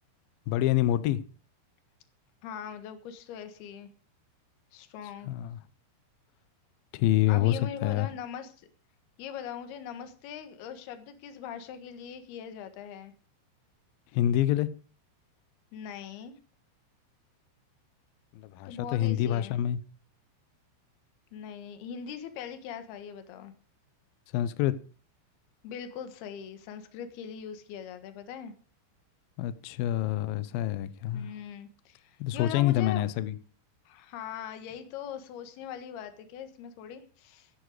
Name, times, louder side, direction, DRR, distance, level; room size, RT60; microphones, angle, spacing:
voice 1, 0.5-1.2 5.3-5.6 6.9-8.1 14.1-14.7 18.4-19.8 24.3-24.7 29.4-31.3 32.2-33.3, left 13 dB, 85° left, 2.0 m, -27 dB
voice 2, 2.4-3.9 4.7-5.3 7.3-8.7 9.2-13.1 15.7-16.4 18.7-19.6 21.3-23.5 25.6-28.5 31.1-33.1 33.9-37.5, left 8 dB, 65° left, 3.2 m, -41 dB
16.0 x 10.5 x 4.9 m
omnidirectional pair, 5.5 m